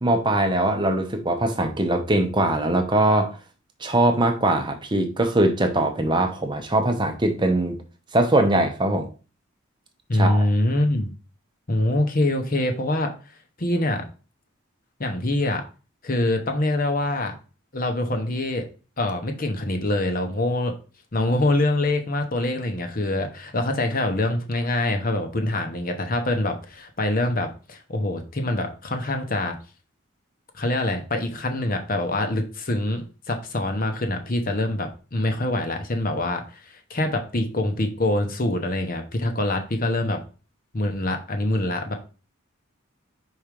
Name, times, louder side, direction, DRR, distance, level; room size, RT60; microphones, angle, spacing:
voice 1, 0.0-3.4 3.8-7.8 8.1-9.1 10.1-10.5, right 1 dB, 20° right, 5 dB, 0.8 m, -21 dB
voice 2, 10.1-11.1 11.7-13.1 13.6-14.0 15.0-15.6 16.0-17.3 17.7-18.7 19.0-20.7 21.1-29.6 30.5-40.2 40.7-41.9, left 1 dB, 40° left, 5 dB, 1.0 m, -24 dB
4.8 x 4.4 x 5.2 m, 0.34 s
head